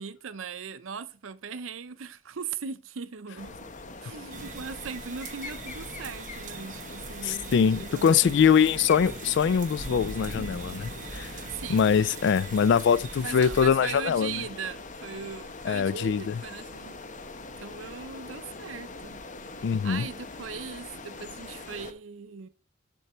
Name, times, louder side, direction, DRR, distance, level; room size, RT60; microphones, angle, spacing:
voice 1, 0.0-3.5 4.0-8.3 11.5-11.9 13.2-17.0 17.6-19.2 19.8-22.5, right 6 dB, 85° right, 0.6 m, -39 dB
sound 1, 3.4-21.9, left 3 dB, 40° left, 0.9 m, -43 dB
sound 2, 4.3-13.7, right 3 dB, 40° right, 1.1 m, -41 dB
voice 2, 7.2-11.3 11.7-14.4 15.7-16.4 19.6-20.1, left 7 dB, 60° left, 0.3 m, -23 dB
13.5 x 4.6 x 4.3 m
head